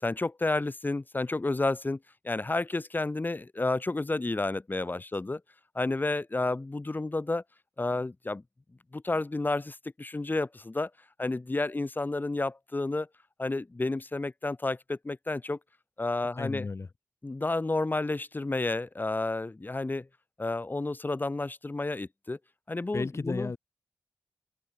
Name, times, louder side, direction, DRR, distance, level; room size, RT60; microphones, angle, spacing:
voice 1, 0.0-2.0 2.2-5.4 5.7-7.4 7.8-8.4 8.9-10.9 11.2-13.1 13.4-15.6 16.0-16.7 17.2-20.1 20.4-22.4 22.7-23.5, left 2 dB, 35° left, 3.7 m, -31 dB
voice 2, 16.4-16.9 22.9-23.6, left 4 dB, 55° left, 3.2 m, -33 dB
open air
cardioid pair, 60°, 6 cm